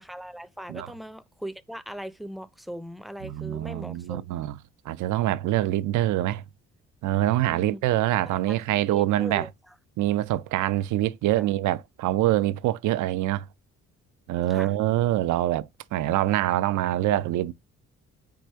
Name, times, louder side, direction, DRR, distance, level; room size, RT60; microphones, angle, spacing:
voice 1, 0.0-4.2 7.5-7.8 8.3-9.7 11.4-11.5 14.5-14.7, equal, ahead, 0.5 m, -40 dB
voice 2, 3.2-4.6 4.9-6.4 7.0-9.5 10.0-13.5 14.3-17.5, right 14 dB, 80° right, 0.5 m, -25 dB
4.8 x 2.5 x 4.4 m
cardioid pair, 90°, 30 cm